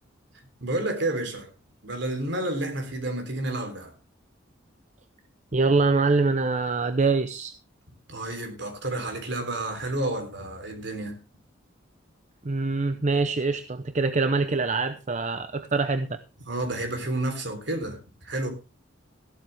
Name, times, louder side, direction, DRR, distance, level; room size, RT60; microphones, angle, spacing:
voice 1, 0.6-1.5 1.8-3.9 8.1-11.2 16.5-18.5, right 2 dB, 65° right, 3.5 m, -30 dB
voice 2, 5.5-7.5 12.4-16.2, right 3 dB, 40° right, 0.7 m, -24 dB
14.0 x 12.5 x 3.4 m
head